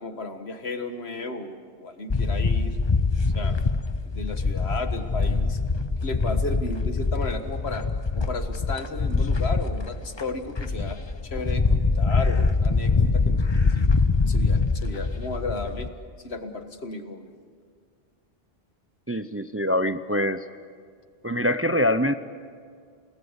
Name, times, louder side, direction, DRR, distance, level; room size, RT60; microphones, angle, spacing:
voice 1, 0.0-2.8 3.3-3.6 4.1-5.6 6.0-7.8 8.1-13.9 14.3-15.9 16.2-17.3, left 3 dB, 75° left, 7 dB, 1.9 m, -34 dB
sound 1, 2.1-15.9, left 4 dB, 30° left, 0.8 m, -24 dB
voice 2, 19.1-20.4 21.2-22.1, left 1 dB, 15° right, 10 dB, 0.5 m, -24 dB
30.0 x 19.0 x 8.1 m, 2.1 s
omnidirectional pair, 1.1 m